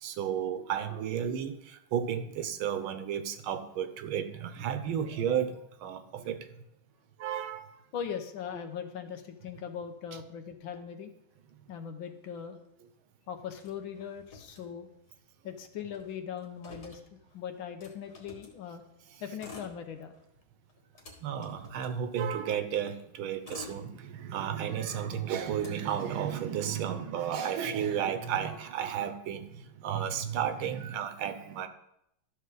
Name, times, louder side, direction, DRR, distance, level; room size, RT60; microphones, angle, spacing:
voice 1, 0.0-6.5 7.2-7.7 8.5-8.6 21.2-31.7, right 8 dB, 75° right, 9 dB, 1.6 m, -33 dB
voice 2, 7.9-11.1 11.7-12.6 13.3-14.9 15.4-18.8 19.2-20.1, left 8 dB, 75° left, 7 dB, 1.6 m, -40 dB
Motor vehicle (road), 13.6-15.2 15.5-15.6 15.8-18.6 19.2-20.3 20.7-22.5 23.1-24.5 24.9-26.5, left 4 dB, 55° left, 2.0 m, -51 dB
12.5 x 6.7 x 3.9 m, 0.77 s
omnidirectional pair, 2.3 m